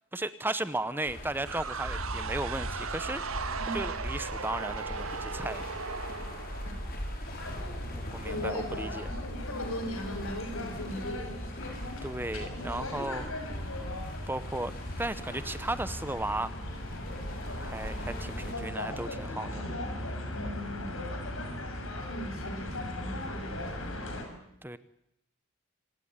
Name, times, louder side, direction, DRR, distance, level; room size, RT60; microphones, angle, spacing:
voice 1, 0.1-3.2 3.7-5.7 8.0-9.0 12.0-13.2 14.3-16.5 17.6-19.6 24.6-24.8, right 2 dB, 10° right, 13 dB, 0.9 m, -35 dB
sound 1, 1.0-18.5, equal, 45° left, 5.6 m, -41 dB
sound 2, 1.5-7.2, right 5 dB, 75° right, 1.6 m, -37 dB
sound 3, 7.2-24.2, left 1 dB, 65° left, 6.0 m, -38 dB
voice 2, 8.2-11.3 20.3-20.9 22.1-24.4, equal, 85° left, 6 dB, 6.2 m, -39 dB
26.5 x 17.5 x 9.8 m, 0.79 s
head